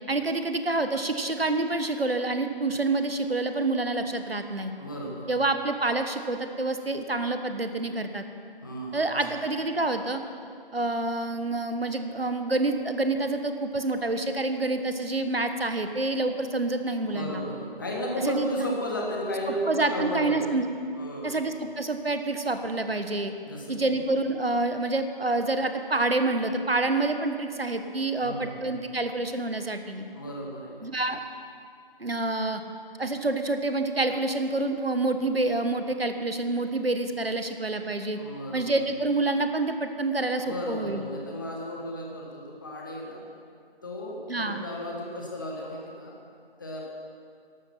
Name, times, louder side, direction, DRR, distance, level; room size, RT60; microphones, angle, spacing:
voice 1, 0.1-4.7 5.3-8.2 8.9-10.2 10.7-17.4 18.2-18.7 19.5-20.7 21.2-23.3 23.7-30.0 30.8-31.2 32.0-32.6 33.0-38.2 38.5-41.1 44.3-44.6, right 2 dB, 75° right, 7 dB, 1.3 m, -27 dB
voice 2, 4.8-5.3 8.6-9.1 17.1-20.5 20.9-21.4 23.4-24.0 28.2-28.6 30.1-30.9 38.2-38.7 40.4-43.2 43.8-46.2 46.6-46.8, equal, 20° left, -2 dB, 1.5 m, -34 dB
13.5 x 12.0 x 5.9 m, 2.3 s
figure-of-eight pair, 160°, 30 cm